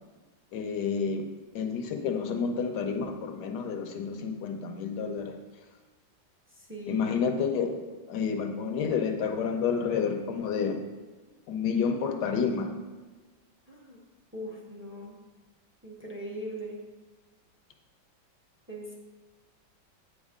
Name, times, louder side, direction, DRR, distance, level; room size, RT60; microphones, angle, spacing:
voice 1, 0.5-1.3 1.5-5.4 6.9-7.8 8.1-10.8 11.5-12.7, left 6 dB, 65° left, 4 dB, 1.3 m, -29 dB
voice 2, 6.6-7.3 13.7-14.0 14.3-15.2 15.8-16.8 18.7-18.9, equal, 10° right, -2 dB, 0.8 m, -40 dB
8.9 x 6.4 x 3.7 m, 1.3 s
omnidirectional pair, 2.1 m